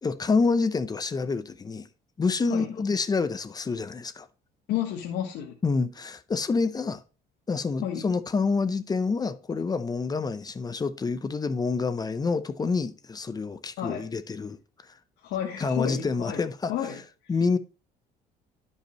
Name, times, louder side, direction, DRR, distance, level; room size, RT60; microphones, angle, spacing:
voice 1, 0.0-1.9 2.2-4.3 5.6-7.0 7.5-14.6 15.6-16.7 17.3-17.6, left 4 dB, 25° left, 0.6 m, -27 dB
voice 2, 4.7-5.5 7.8-8.0 13.8-14.0 15.2-16.4 16.7-17.0, left 10 dB, 80° left, 1.4 m, -31 dB
11.5 x 5.5 x 3.1 m
cardioid pair, 110°, 17 cm